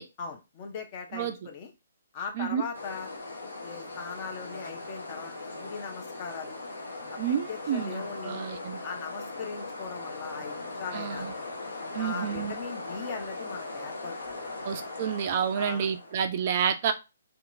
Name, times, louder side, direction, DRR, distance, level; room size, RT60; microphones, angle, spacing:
voice 1, 0.2-1.7 2.1-3.1 3.6-5.3 5.6-6.6 7.3-8.4 8.8-11.3 12.0-14.5 15.5-15.9, left 5 dB, 30° left, 3 dB, 0.6 m, -39 dB
sound 1, 2.7-16.2, left 2 dB, 70° left, 0.9 m, -39 dB
voice 2, 7.2-8.8 10.9-11.3 11.9-12.6 14.6-16.9, right 8 dB, 40° right, 7 dB, 0.3 m, -29 dB
2.7 x 2.3 x 2.6 m, 0.26 s
figure-of-eight pair, 130°, 0 cm